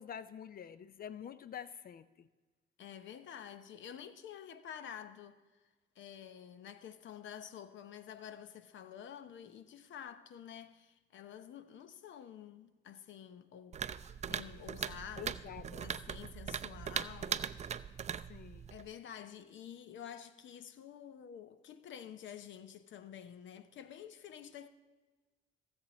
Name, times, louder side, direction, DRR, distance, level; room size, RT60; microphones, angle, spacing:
voice 1, 0.0-2.3 15.2-15.8 18.2-18.7, left 9 dB, 50° left, 0.4 m, -47 dB
voice 2, 2.8-5.4 6.0-13.8 14.3-15.5 15.8-17.8 18.7-24.7, left 9 dB, 70° left, 0.8 m, -49 dB
sound 1, 13.7-18.9, right 8 dB, 35° right, 0.4 m, -40 dB
16.5 x 7.5 x 4.2 m
cardioid pair, 90°, 20 cm